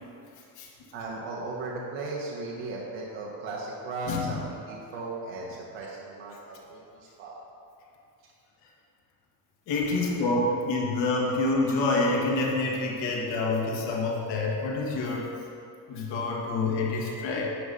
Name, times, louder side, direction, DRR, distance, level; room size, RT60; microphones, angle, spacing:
voice 1, 0.9-7.4 9.8-10.5 10.8-10.9 11.2-11.3, right 2 dB, 80° right, -4 dB, 1.3 m, -37 dB
voice 2, 9.7-15.3 15.9-17.5, left 2 dB, 75° left, -2 dB, 1.7 m, -27 dB
10.0 x 4.0 x 5.6 m, 2.5 s
cardioid pair, 140°, 44 cm